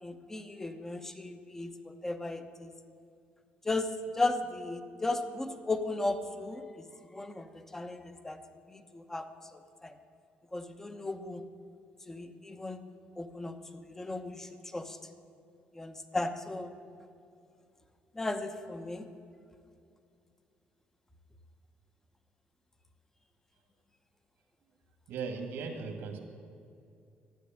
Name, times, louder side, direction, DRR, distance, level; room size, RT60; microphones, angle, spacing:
voice 1, 0.0-2.7 3.6-8.4 8.7-9.9 10.5-11.4 12.1-12.8 13.2-15.0 15.7-16.7 18.1-19.1, left 2 dB, 10° left, 8 dB, 0.9 m, -36 dB
voice 2, 25.1-26.2, right 5 dB, 80° right, 3 dB, 1.8 m, -37 dB
13.0 x 9.7 x 8.7 m, 2.5 s
cardioid pair, 135°, 4 cm